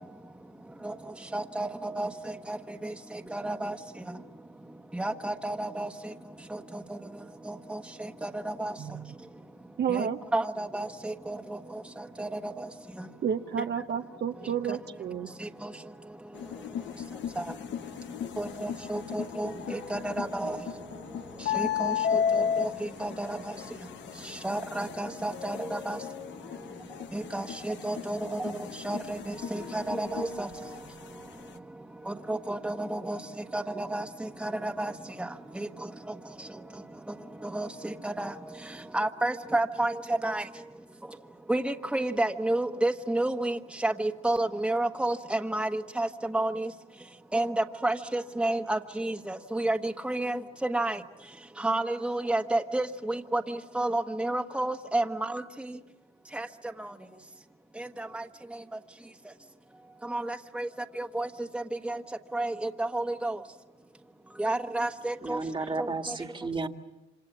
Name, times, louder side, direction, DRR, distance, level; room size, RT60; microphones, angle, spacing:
voice 1, 1.3-2.1 2.5-2.6 3.3-3.7 5.0-5.9 7.7-7.8 8.2-8.7 9.9-10.0 10.3-11.4 12.2-12.5 18.4-19.5 19.9-20.6 21.8-21.9 22.3-22.7 23.0-23.4 24.4-26.0 27.1-28.5 28.8-29.2 29.5-30.5 32.3-33.2 33.5-34.0 34.4-34.9 37.5-37.7 38.0-38.3 38.9-39.9 40.2-40.4 41.5-43.6 43.8-46.1 46.3-46.7 47.3-49.8 50.0-50.4 50.7-51.0 51.6-53.4 53.7-55.0 56.3-56.4 58.1-58.2 60.1-60.7 61.0-61.3 61.5-62.0 62.3-63.4 64.4-65.4 65.8-65.9, right 2 dB, 5° right, 5 dB, 1.3 m, -30 dB
voice 2, 8.8-9.1 9.8-10.2 13.2-15.3, right 8 dB, 60° right, 5 dB, 0.9 m, -31 dB
sound 1, 16.3-31.5, left 8 dB, 65° left, 1.0 m, -35 dB
voice 3, 65.2-66.7, right 3 dB, 25° right, 7 dB, 1.7 m, -33 dB
28.0 x 26.0 x 7.3 m, 1.1 s
cardioid pair, 90°, 20 cm